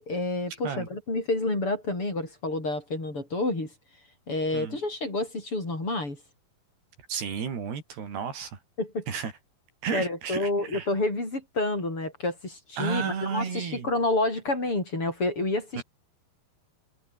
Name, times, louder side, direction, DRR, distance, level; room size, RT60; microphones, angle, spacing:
voice 1, 0.0-3.7 4.3-6.2 8.8-9.1 9.9-15.8, left 2 dB, 35° left, 8.7 m, -29 dB
voice 2, 7.1-8.6 9.1-9.3 9.8-10.9 12.8-13.9 15.8-15.9, right 6 dB, 85° right, 6.2 m, -32 dB
omnidirectional pair, 4.5 m